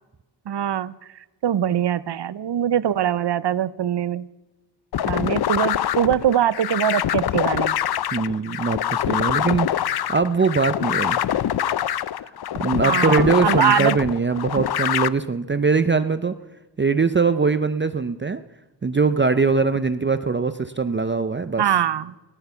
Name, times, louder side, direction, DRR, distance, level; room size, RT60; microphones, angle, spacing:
voice 1, 0.5-0.9 1.4-4.3 5.1-7.8 12.8-14.0 21.6-22.1, right 10 dB, 70° right, 19 dB, 0.6 m, -22 dB
sound 1, 4.9-15.1, left 10 dB, 60° left, 0.5 m, -24 dB
voice 2, 8.1-11.2 12.2-16.4 16.8-18.4 18.8-21.6, right 4 dB, 25° right, 11 dB, 0.5 m, -22 dB
sound 2, 12.3-16.3, left 5 dB, 80° left, 2.7 m, -53 dB
15.5 x 12.0 x 6.9 m, 1.1 s
wide cardioid pair, 65°, 43 cm